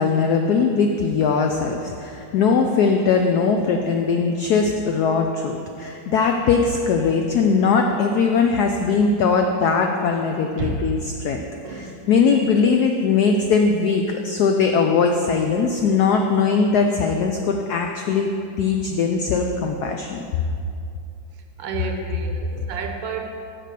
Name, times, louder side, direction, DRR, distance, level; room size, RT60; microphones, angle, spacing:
voice 1, 0.0-18.3 18.6-20.2, left 5 dB, 80° left, 3 dB, 0.8 m, -20 dB
voice 2, 11.6-12.0 21.6-23.3, right 4 dB, 75° right, 4 dB, 1.4 m, -30 dB
7.5 x 5.2 x 6.6 m, 2.5 s
omnidirectional pair, 2.2 m